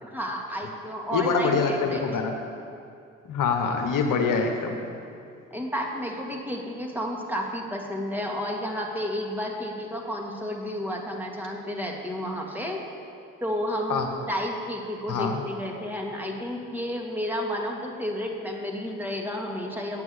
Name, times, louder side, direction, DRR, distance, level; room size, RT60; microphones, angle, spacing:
voice 1, 0.0-2.0 5.5-12.8 13.4-20.0, equal, 5° right, -1 dB, 2.3 m, -31 dB
voice 2, 1.1-2.3 3.2-4.8 13.9-14.1 15.1-15.4, left 5 dB, 60° left, 3 dB, 1.2 m, -25 dB
9.0 x 7.6 x 7.9 m, 2.4 s
hypercardioid pair, 45°, 35 cm